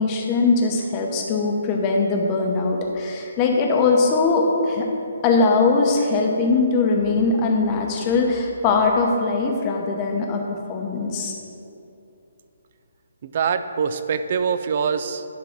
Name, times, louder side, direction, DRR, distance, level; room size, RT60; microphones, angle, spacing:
voice 1, 0.0-4.9 5.2-10.4 10.7-11.3, left 3 dB, 20° left, 1 dB, 0.8 m, -21 dB
voice 2, 13.2-15.2, right 6 dB, 35° right, 11 dB, 0.4 m, -24 dB
10.5 x 3.8 x 6.0 m, 2.7 s
hypercardioid pair, 170°, 0 cm